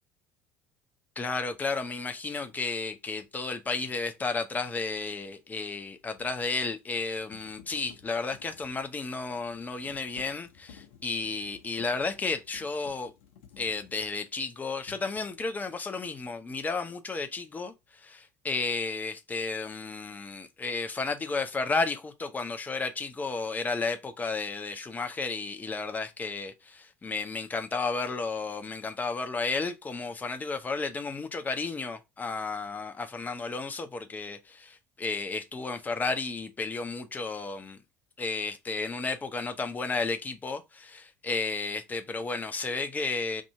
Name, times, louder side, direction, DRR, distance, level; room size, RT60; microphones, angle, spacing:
voice 1, 1.2-13.1 13.6-37.8 38.2-43.4, left 4 dB, 20° left, 0.7 m, -33 dB
sound 1, 2.5-2.6 5.7-14.5 14.8-15.6, left 8 dB, 65° left, 0.7 m, -56 dB
2.8 x 2.6 x 4.2 m
figure-of-eight pair, 60°, 8 cm